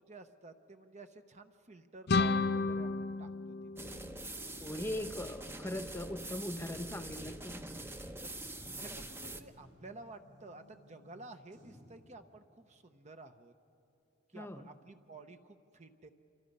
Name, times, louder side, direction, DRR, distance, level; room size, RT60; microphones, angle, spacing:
voice 1, 0.0-3.3 7.9-8.3 8.8-13.5 14.3-16.1, right 2 dB, 40° right, 7 dB, 0.8 m, -52 dB
sound 1, 2.1-4.8, left 3 dB, 55° left, 0.6 m, -32 dB
sound 2, 3.8-9.4, right 2 dB, 10° right, 0.8 m, -44 dB
voice 2, 4.0-7.9 14.3-14.7, left 1 dB, 15° left, 8 dB, 0.9 m, -41 dB
sound 3, 6.1-12.0, left 1 dB, 80° right, 7.2 m, -61 dB
27.5 x 24.0 x 5.5 m, 2.6 s
head